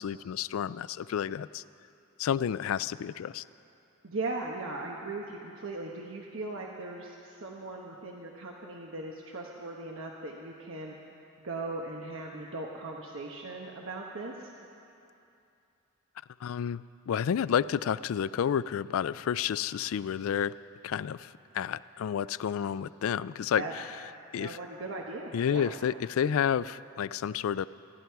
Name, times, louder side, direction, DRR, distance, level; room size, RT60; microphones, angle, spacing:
voice 1, 0.0-1.6 2.2-3.4 16.4-20.5 20.8-23.8 24.3-24.6 25.3-27.7, left 8 dB, 80° left, 18 dB, 0.3 m, -30 dB
voice 2, 4.0-10.9 11.4-14.5 23.5-23.7 24.4-25.7, right 2 dB, 70° right, -1 dB, 1.1 m, -38 dB
26.5 x 11.5 x 4.7 m, 2.7 s
head